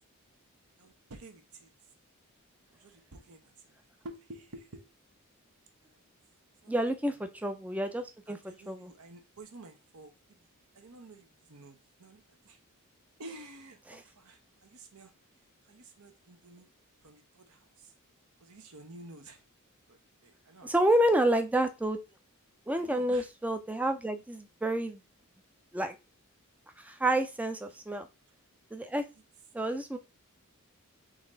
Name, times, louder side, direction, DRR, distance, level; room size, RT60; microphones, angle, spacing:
voice 1, 0.8-1.7 2.7-3.8 4.0-4.9 5.8-6.1 6.6-6.7 8.3-10.4 10.7-12.6 13.2-15.1 15.7-16.7 17.0-17.9 18.4-19.4 19.9-20.8 22.7-23.3 27.7-28.0, right 2 dB, 75° right, 5 dB, 1.0 m, -51 dB
voice 2, 6.7-8.4 8.7-8.9 20.6-22.0 22.7-25.0 25.7-25.9 26.8-28.1 28.7-29.0 29.5-30.0, right 1 dB, 5° right, 8 dB, 0.4 m, -29 dB
4.0 x 3.2 x 3.8 m, 0.25 s
head